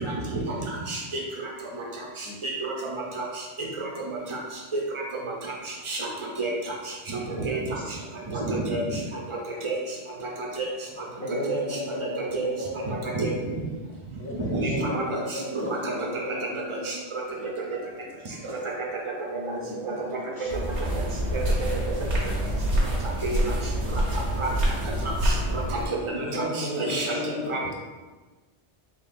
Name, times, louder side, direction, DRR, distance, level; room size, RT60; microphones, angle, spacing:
voice 1, 2.4-2.7 4.7-4.8 5.9-6.0 6.4-6.5 7.4-7.8 8.3-9.0 9.6-9.8 10.6-10.7 11.5-11.6 12.3-12.5 12.9-13.3 14.5-15.0 15.5-15.7 16.9-17.0 19.8-19.9 21.3-21.4 23.2-23.5 24.4-24.5 25.0-25.3 26.3-26.4 26.8-27.1 27.5-27.6, right 3 dB, 35° right, -2 dB, 0.5 m, -28 dB
voice 2, 7.7-8.2 9.6-9.7 10.4-10.5 10.9-11.0 14.6-14.7 15.9-16.0 17.4-17.5 17.8-18.6 19.0-19.1 19.6-21.1 22.0-22.4 23.3-24.5 27.1-27.3 27.6-27.7, left 2 dB, 75° left, -7 dB, 1.6 m, -47 dB
voice 3, 11.2-13.6 14.2-18.0 19.3-21.1 26.1-27.5, left 1 dB, 50° left, -5 dB, 1.1 m, -35 dB
sound 1, 20.5-25.9, right 1 dB, 85° right, 1.2 m, -26 dB
3.9 x 3.7 x 2.5 m, 1.3 s
omnidirectional pair, 1.1 m